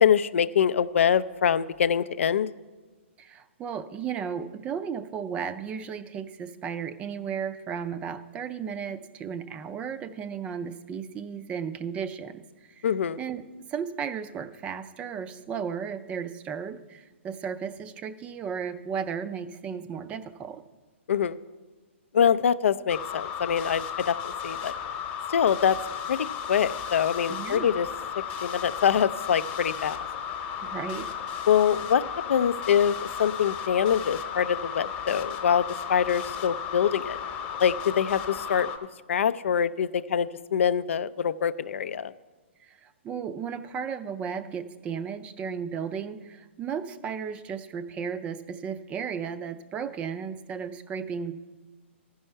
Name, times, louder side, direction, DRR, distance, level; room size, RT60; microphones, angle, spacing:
voice 1, 0.0-2.5 12.8-13.2 21.1-21.4 22.1-24.1 24.4-24.7 25.3-25.8 26.1-26.2 26.5-27.9 28.4-30.0 31.5-32.0 32.3-37.2 37.6-38.7 39.1-42.1, left 8 dB, 75° left, 15 dB, 0.4 m, -24 dB
voice 2, 3.2-12.4 12.8-12.9 13.2-13.4 13.7-20.6 27.3-27.7 30.6-31.1 42.6-51.3, right 7 dB, 20° right, 12 dB, 0.4 m, -34 dB
sound 1, 22.9-38.8, left 8 dB, 25° left, 0.9 m, -34 dB
14.5 x 5.5 x 4.4 m, 1.3 s
hypercardioid pair, 145°, 7 cm